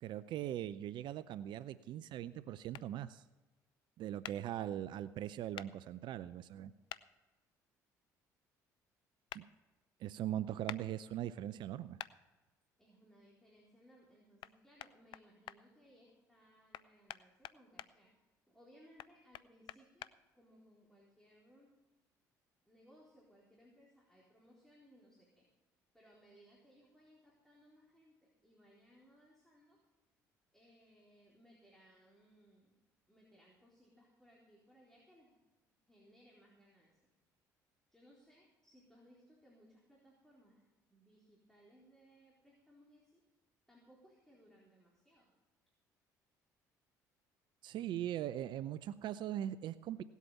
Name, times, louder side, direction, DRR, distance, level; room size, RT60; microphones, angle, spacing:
voice 1, 0.0-3.2 4.0-6.7 9.3-9.4 10.0-12.0 47.6-50.0, right 11 dB, 60° right, 15 dB, 0.5 m, -40 dB
sound 1, 2.7-2.9 4.2-4.4 5.6-5.7 6.9-7.0 9.3-9.4 10.7-10.8 12.0-12.1 14.4-14.5 14.8-15.6 16.7-17.9 19.0-20.1, left 13 dB, 65° left, 0.5 m, -46 dB
voice 2, 12.8-18.1 18.5-21.7 22.7-25.5 25.9-29.8 30.5-32.8 33.1-35.4 35.9-36.9 37.9-40.6 40.9-43.2 43.7-45.3, equal, 5° left, -4 dB, 4.1 m, -65 dB
17.5 x 8.3 x 5.8 m, 1.2 s
hypercardioid pair, 60°, 9 cm